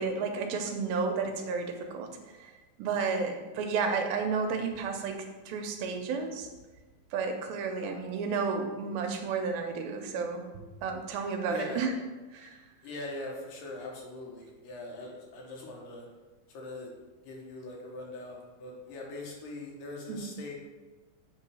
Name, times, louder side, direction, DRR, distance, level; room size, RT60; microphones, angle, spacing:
voice 1, 0.0-2.5 2.8-6.5 7.1-10.5 10.8-11.9 12.3-12.6 20.1-20.2, right 5 dB, 80° right, 4 dB, 2.4 m, -32 dB
voice 2, 11.5-11.9 12.8-16.1 16.5-16.9 17.2-20.5, left 2 dB, 70° left, -1 dB, 2.5 m, -41 dB
7.6 x 3.8 x 4.8 m, 1.2 s
omnidirectional pair, 4.2 m